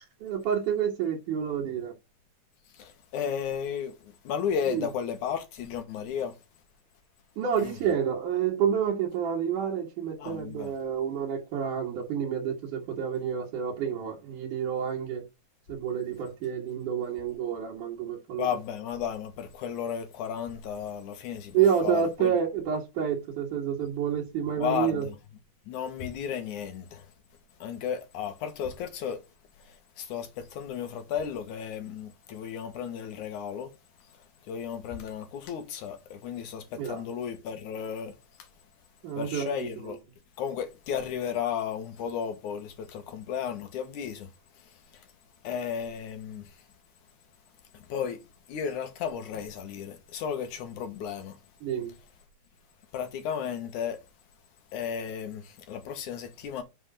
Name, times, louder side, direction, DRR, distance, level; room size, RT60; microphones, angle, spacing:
voice 1, 0.2-1.9 4.7-4.9 7.4-15.2 15.7-18.5 21.5-25.1 36.8-37.0 39.0-39.5 51.6-51.9, right 8 dB, 80° right, 3.1 m, -29 dB
voice 2, 2.7-6.3 7.6-7.8 10.2-10.7 18.4-22.4 24.6-25.2 25.7-27.1 27.6-29.2 29.6-33.7 34.5-38.5 39.2-40.0 40.4-44.3 44.6-45.1 45.4-46.6 47.7-48.2 48.5-51.4 52.9-54.0 54.7-56.6, left 8 dB, 80° left, 2.9 m, -34 dB
7.0 x 5.8 x 5.0 m
omnidirectional pair, 3.5 m